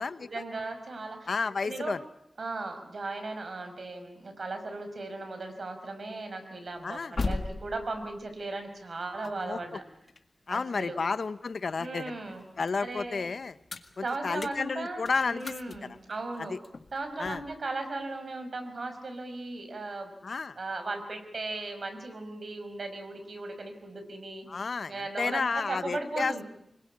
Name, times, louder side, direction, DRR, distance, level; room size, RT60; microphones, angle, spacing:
voice 1, 0.2-1.3 1.6-2.0 2.4-9.8 10.5-11.0 11.8-12.4 12.8-13.3 14.0-16.6 16.9-20.1 20.6-24.5 24.9-26.4, right 2 dB, 65° right, 7 dB, 5.4 m, -37 dB
voice 2, 1.3-2.0 6.8-7.2 9.4-9.6 10.5-12.2 12.6-13.6 14.0-15.8 16.5-16.6 17.2-17.4 20.2-20.6 24.5-26.3, left 4 dB, 75° left, 14 dB, 0.9 m, -31 dB
sound 1, 6.7-11.7 12.2-17.6, left 3 dB, 55° left, 1.9 m, -40 dB
25.0 x 21.5 x 8.6 m, 0.79 s
wide cardioid pair, 85°, 0 cm